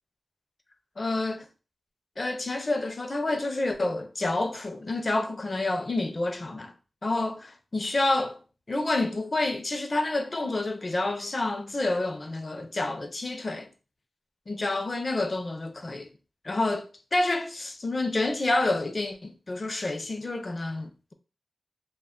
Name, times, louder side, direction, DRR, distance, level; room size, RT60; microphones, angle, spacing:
voice 1, 1.0-1.5 2.2-6.7 7.0-8.4 8.7-13.7 14.5-16.1 16.4-21.1, left 2 dB, 40° left, 0.4 m, -28 dB
2.1 x 2.0 x 3.6 m
wide cardioid pair, 75°, 0 cm